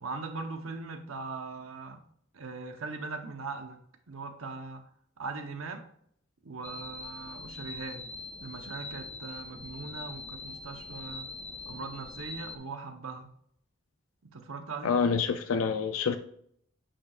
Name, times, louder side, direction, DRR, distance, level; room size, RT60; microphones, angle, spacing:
voice 1, 0.0-2.0 2.3-3.8 4.1-4.8 5.2-5.8 6.4-11.3 11.6-13.3 14.2-15.0, right 4 dB, 85° right, 0.9 m, -40 dB
sound 1, 6.6-12.6, left 3 dB, 5° left, 0.3 m, -43 dB
voice 2, 14.8-16.2, left 5 dB, 90° left, 0.4 m, -27 dB
8.6 x 5.6 x 2.4 m
head